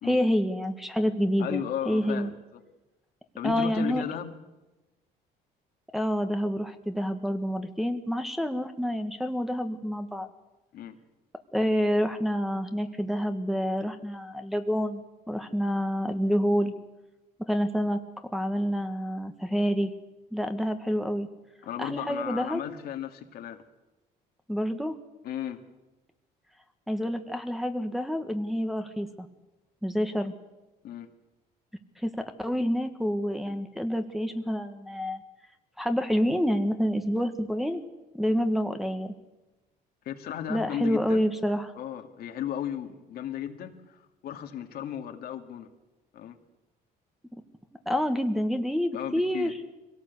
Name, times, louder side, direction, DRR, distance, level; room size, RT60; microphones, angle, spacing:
voice 1, 0.0-2.3 3.4-4.0 5.9-10.3 11.5-16.7 17.5-18.0 18.3-19.9 20.3-21.3 21.8-22.6 24.5-25.0 26.9-29.3 29.8-30.3 32.0-35.2 35.8-37.8 38.1-39.1 40.5-41.7 47.3-47.4 47.8-49.5, equal, ahead, 5 dB, 1.5 m, -28 dB
voice 2, 1.4-2.4 3.4-4.3 10.7-11.0 21.6-23.6 25.2-25.6 30.8-31.1 40.1-41.3 41.8-45.7 46.1-46.4 48.9-49.5, left 10 dB, 65° left, 5 dB, 2.1 m, -35 dB
23.5 x 17.5 x 8.3 m, 1.1 s
cardioid pair, 110°, 17 cm